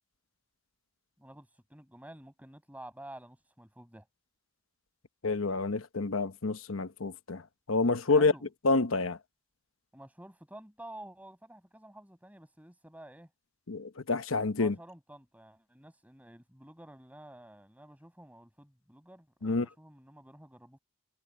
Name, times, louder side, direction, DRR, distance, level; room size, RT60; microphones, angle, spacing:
voice 1, 1.2-4.1 8.1-8.5 9.9-13.3 14.6-20.8, right 1 dB, 10° right, 7.6 m, -50 dB
voice 2, 5.2-8.3 8.6-9.2 13.7-14.8 19.4-19.7, left 3 dB, 80° left, 1.1 m, -28 dB
head